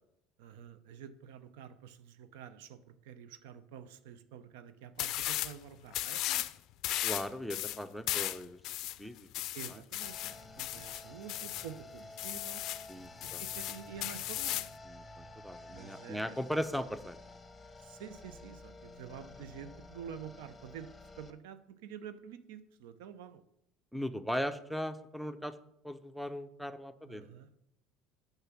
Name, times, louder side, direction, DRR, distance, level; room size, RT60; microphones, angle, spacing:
voice 1, 0.4-6.5 9.5-12.6 13.2-14.7 15.7-16.4 17.8-20.9 21.2-23.4 27.1-27.5, right 8 dB, 80° right, 12 dB, 0.5 m, -48 dB
sound 1, 5.0-5.6 5.9-6.5 6.8-11.7 12.2-12.9 13.2-14.7, left 15 dB, 60° left, 0.4 m, -36 dB
voice 2, 7.0-8.6 9.0-9.3 9.7-9.8 10.6-10.7 12.9-13.4 14.9-17.2 23.9-25.5 25.8-27.3, equal, ahead, 12 dB, 0.6 m, -38 dB
sound 2, 10.0-21.3, left 2 dB, 15° left, 1.0 m, -52 dB
6.8 x 5.7 x 6.0 m, 0.79 s
hypercardioid pair, 80°, 0 cm